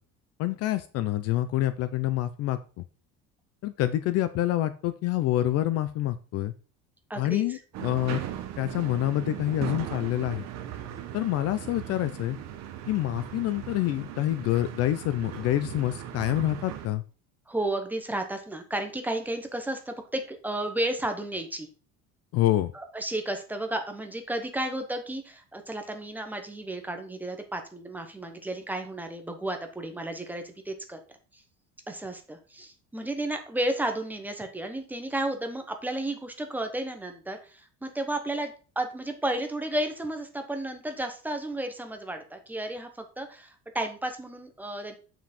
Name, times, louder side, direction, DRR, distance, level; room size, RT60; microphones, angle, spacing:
voice 1, 0.4-2.6 3.6-6.5 7.2-8.2 8.6-10.4 11.1-12.4 12.9-17.0 22.3-22.7, left 14 dB, 45° left, 13 dB, 0.5 m, -27 dB
voice 2, 7.1-7.6 17.5-21.7 22.7-31.0 31.3-31.4 31.9-44.9, right 1 dB, 5° right, 5 dB, 0.9 m, -33 dB
sound 1, 7.7-16.9, right 11 dB, 50° right, 1.2 m, -38 dB
7.3 x 6.0 x 4.2 m, 0.37 s
cardioid pair, 180°, 34 cm